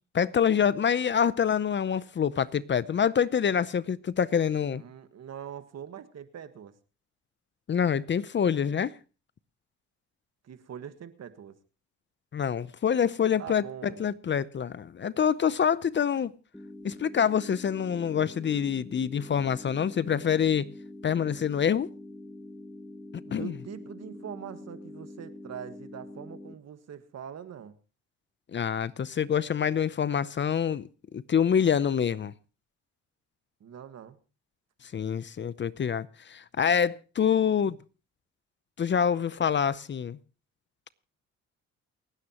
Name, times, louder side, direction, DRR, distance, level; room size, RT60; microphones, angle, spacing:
voice 1, 0.1-4.8 7.7-8.9 12.3-16.3 16.8-20.7 21.0-21.9 23.3-23.5 28.5-30.9 31.1-32.3 34.9-37.8 38.8-40.2, left 7 dB, 40° left, 0.7 m, -26 dB
voice 2, 4.7-6.7 10.4-11.6 13.4-14.1 23.3-27.8 33.6-34.2, right 8 dB, 60° right, 1.6 m, -43 dB
sound 1, 16.5-26.5, left 2 dB, 5° left, 1.1 m, -45 dB
28.5 x 9.7 x 3.0 m
cardioid pair, 90°, 30 cm